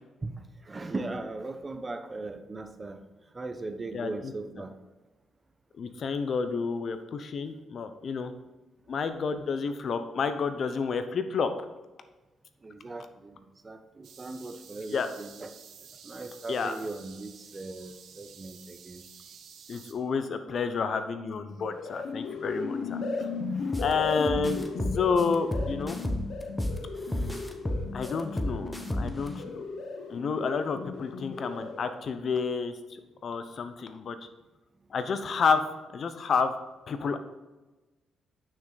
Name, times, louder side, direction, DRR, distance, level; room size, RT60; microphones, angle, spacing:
voice 1, 0.6-3.0 3.3-4.7 9.0-9.1 12.6-13.4 13.6-15.5 16.0-19.0 23.5-23.7 24.0-24.1, right 2 dB, 30° right, 7 dB, 0.8 m, -38 dB
voice 2, 3.9-4.3 5.8-8.3 8.9-11.5 14.9-15.1 16.5-16.7 19.7-23.3 23.8-24.7 24.9-26.0 27.9-29.6 30.1-32.7 33.2-34.2 34.9-35.6 35.9-36.5 36.9-37.2, left 5 dB, 55° left, 10 dB, 0.7 m, -30 dB
sound 1, 14.0-19.9, right 7 dB, 75° right, 0.9 m, -51 dB
sound 2, 21.5-32.0, left 4 dB, 75° left, 1.1 m, -36 dB
sound 3, 23.7-23.9 24.3-26.8 27.1-29.3, left 1 dB, 10° left, 1.0 m, -31 dB
8.8 x 6.2 x 3.9 m, 1.1 s
cardioid pair, 80°, 0 cm